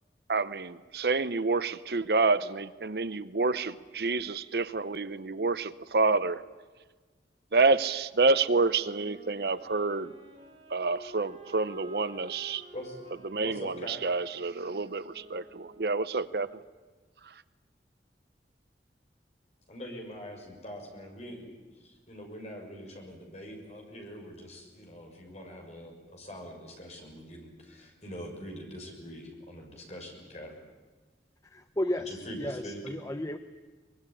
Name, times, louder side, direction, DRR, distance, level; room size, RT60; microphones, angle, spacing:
voice 1, 0.3-6.4 7.5-10.1 10.7-12.6 13.3-16.6, right 3 dB, 60° right, 15 dB, 0.7 m, -28 dB
sound 1, 8.4-16.3, right 1 dB, 35° right, 4.5 m, -51 dB
voice 2, 12.7-14.0 19.7-30.6 32.1-32.8, equal, 40° left, 1 dB, 6.5 m, -44 dB
voice 3, 31.4-33.4, left 1 dB, 20° left, 9 dB, 0.8 m, -33 dB
24.0 x 22.0 x 10.0 m, 1.4 s
head